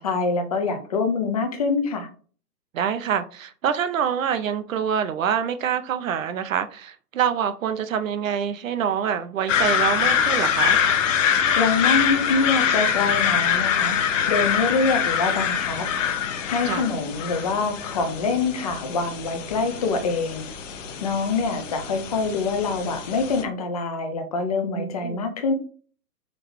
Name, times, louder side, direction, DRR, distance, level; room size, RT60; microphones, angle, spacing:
voice 1, 0.0-2.1 11.2-14.0 14.3-15.9 16.5-20.4 21.0-25.5, left 4 dB, 25° left, 0.4 m, -25 dB
voice 2, 2.7-10.8 16.7-16.9 24.8-25.2, right 8 dB, 55° right, 0.5 m, -26 dB
sound 1, 9.5-23.4, left 8 dB, 50° left, 0.8 m, -24 dB
3.9 x 3.3 x 3.0 m
hypercardioid pair, 125°, 48 cm